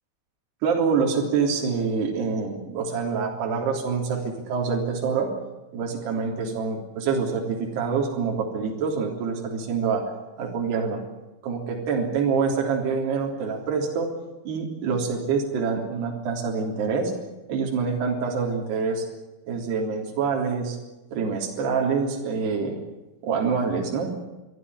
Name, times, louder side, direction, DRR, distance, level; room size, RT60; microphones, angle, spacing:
voice 1, 0.6-5.3 5.7-10.1 10.4-11.0 11.4-14.1 14.5-17.1 17.5-19.1 19.5-20.8 21.1-22.8 23.2-24.1, right 5 dB, 60° right, 1 dB, 5.4 m, -26 dB
24.5 x 15.5 x 9.9 m, 1.1 s
omnidirectional pair, 5.5 m